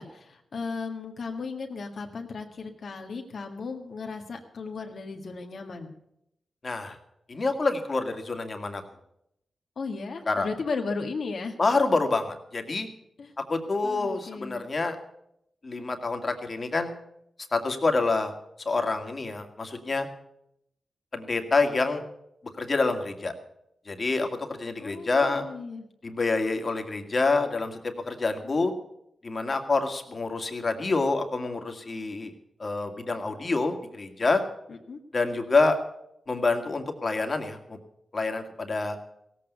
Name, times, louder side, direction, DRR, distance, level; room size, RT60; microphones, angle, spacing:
voice 1, 0.0-5.9 9.8-11.5 13.2-13.3 13.8-14.6 24.8-25.8 28.6-28.7 34.7-35.0, left 4 dB, 70° left, 3 dB, 1.7 m, -35 dB
voice 2, 6.6-7.0 7.3-8.8 10.3-10.5 11.6-12.9 13.4-15.0 15.6-16.9 17.5-18.3 18.7-20.1 21.1-22.0 22.6-23.3 23.9-25.4 26.0-28.7 29.2-32.3 32.6-34.4 35.1-35.8 36.3-37.8 38.1-39.0, left 3 dB, 45° left, 5 dB, 2.2 m, -27 dB
16.5 x 8.5 x 8.1 m, 0.79 s
cardioid pair, 45°, 0 cm